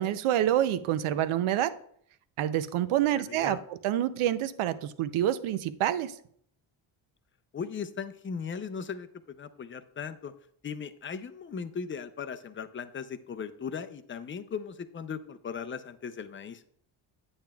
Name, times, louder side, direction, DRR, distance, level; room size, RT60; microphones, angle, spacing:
voice 1, 0.0-1.7 2.4-6.1, right 12 dB, 80° right, 13 dB, 0.7 m, -27 dB
voice 2, 3.1-3.6 7.5-10.3 10.6-16.6, left 6 dB, 25° left, 10 dB, 0.5 m, -38 dB
8.7 x 8.7 x 2.3 m, 0.63 s
cardioid pair, 115°, 49 cm